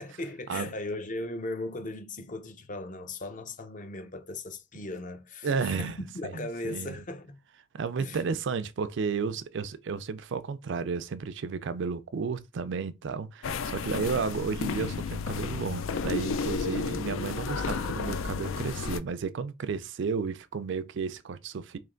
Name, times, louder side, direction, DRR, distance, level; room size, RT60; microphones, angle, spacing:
voice 1, 0.0-7.4 8.0-8.2, left 2 dB, 40° left, 0.6 m, -37 dB
voice 2, 5.4-6.0 6.2-7.0 7.7-21.8, right 5 dB, 65° right, 0.4 m, -32 dB
sound 1, 13.4-19.0, left 5 dB, 90° left, 0.4 m, -32 dB
3.3 x 3.0 x 3.8 m
head